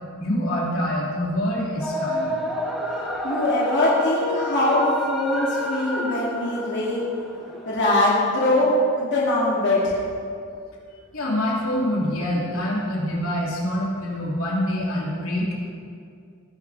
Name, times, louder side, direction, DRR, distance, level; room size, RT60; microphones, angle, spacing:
voice 1, 0.2-2.4 11.1-15.6, left 1 dB, 80° left, -5 dB, 3.0 m, -25 dB
sound 1, 1.8-7.9, equal, ahead, 1.6 m, -30 dB
voice 2, 3.0-7.0 7.7-10.0, left 1 dB, 55° left, -6 dB, 2.5 m, -22 dB
19.0 x 10.5 x 3.5 m, 2.3 s
head